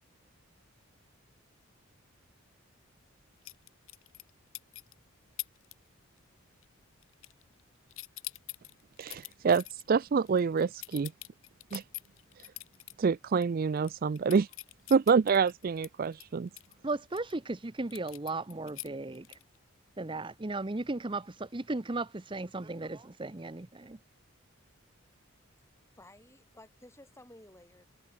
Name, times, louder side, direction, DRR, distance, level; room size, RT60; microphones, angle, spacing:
sound 1, 3.4-4.3 4.5-4.9 5.4-5.7 6.0-6.4 6.6-7.6 7.9-12.9 13.4-13.5 13.8-17.3 17.9-19.6, left 17 dB, 70° left, 1.1 m, -44 dB
voice 1, 9.0-11.1 11.7-11.8 13.0-14.5 14.9-16.5, right 5 dB, 45° right, 0.3 m, -27 dB
voice 2, 16.8-19.4 20.0-24.0, right 2 dB, 25° right, 0.7 m, -36 dB
voice 3, 25.9-27.9, left 1 dB, 15° left, 6.6 m, -54 dB
head